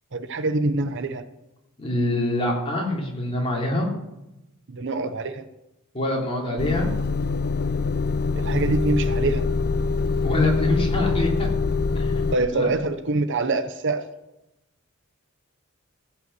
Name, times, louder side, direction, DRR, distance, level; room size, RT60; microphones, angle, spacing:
voice 1, 0.1-1.2 4.7-5.4 8.4-9.5 12.3-14.1, right 2 dB, 55° right, 10 dB, 0.8 m, -25 dB
voice 2, 1.8-3.9 5.9-6.9 10.2-11.5 11.9-12.1 12.5-12.7, left 1 dB, 25° left, -2 dB, 3.3 m, -25 dB
Motor vehicle (road) / Engine starting / Idling, 6.6-12.4, left 4 dB, 45° left, 0.6 m, -24 dB
15.5 x 5.7 x 8.1 m, 0.94 s
head